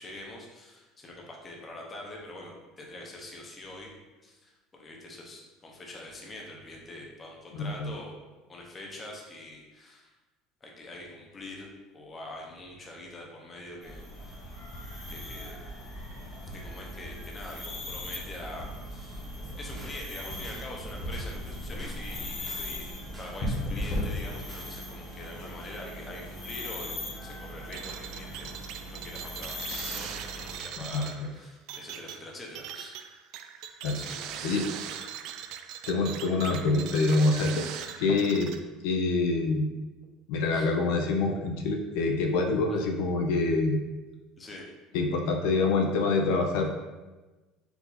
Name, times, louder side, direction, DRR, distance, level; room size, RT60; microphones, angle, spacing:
voice 1, 0.0-3.9 4.2-8.1 8.5-10.1 10.6-11.7 11.9-14.3 15.1-15.6 16.5-19.3 19.6-26.9 27.2-33.0 33.9-35.0 40.5-40.7 44.4-44.7, left 1 dB, 20° left, -1 dB, 0.7 m, -44 dB
voice 2, 7.5-7.9 30.9-31.1 33.8-34.0 34.4-34.7 35.9-37.7 38.0-38.5 38.8-39.7 40.3-43.8 44.9-46.7, left 3 dB, 75° left, 3 dB, 0.5 m, -26 dB
sound 1, 13.8-30.6, left 1 dB, 35° left, 1.1 m, -38 dB
sound 2, 19.4-24.7, left 1 dB, 10° right, 0.8 m, -49 dB
sound 3, 27.7-38.6, right 9 dB, 55° right, 0.3 m, -40 dB
4.6 x 2.6 x 4.0 m, 1.2 s
cardioid pair, 165°, 0 cm